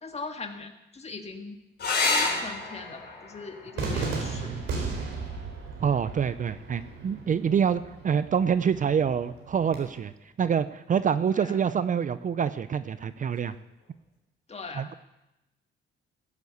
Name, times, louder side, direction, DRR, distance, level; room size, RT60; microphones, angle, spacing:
voice 1, 0.0-1.6 2.0-4.6 11.3-11.6 14.5-15.0, left 4 dB, 30° left, 5 dB, 1.8 m, -40 dB
sound 1, 1.8-6.8 8.7-9.3 12.8-12.9 13.2-13.3, left 3 dB, 55° left, 4.6 m, -32 dB
Cheering / Fireworks, 3.8-9.8, right 4 dB, 80° right, 4.4 m, -36 dB
voice 2, 4.1-4.6 5.8-10.1 10.4-13.5 14.8-14.9, right 7 dB, 40° right, 14 dB, 0.6 m, -26 dB
16.0 x 8.3 x 7.9 m, 0.95 s
cardioid pair, 90°, 20 cm